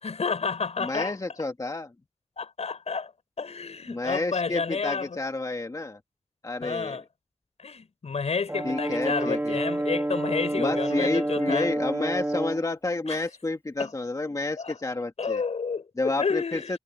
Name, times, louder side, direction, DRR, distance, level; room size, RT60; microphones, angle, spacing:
voice 1, 0.0-1.2 2.4-3.1 3.4-5.2 6.6-7.0 7.6-11.7 13.1-13.2 13.8-13.9 14.6-14.8 15.2-16.8, left 5 dB, 75° left, 6.1 m, -30 dB
voice 2, 0.8-1.9 3.9-6.0 6.4-7.0 8.6-9.6 10.6-15.4 16.0-16.8, left 2 dB, 30° left, 1.9 m, -30 dB
Brass instrument, 8.5-12.7, right 1 dB, 15° right, 2.6 m, -28 dB
wide cardioid pair, 90°, 11 cm